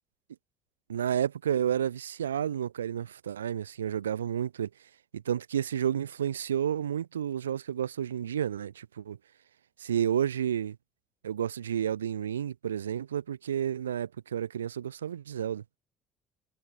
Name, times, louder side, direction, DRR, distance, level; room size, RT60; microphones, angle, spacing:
voice 1, 0.9-4.7 5.1-9.2 9.8-10.8 11.2-15.6, right 9 dB, 85° right, 1.8 m, -31 dB
hypercardioid pair, 55°, 0 cm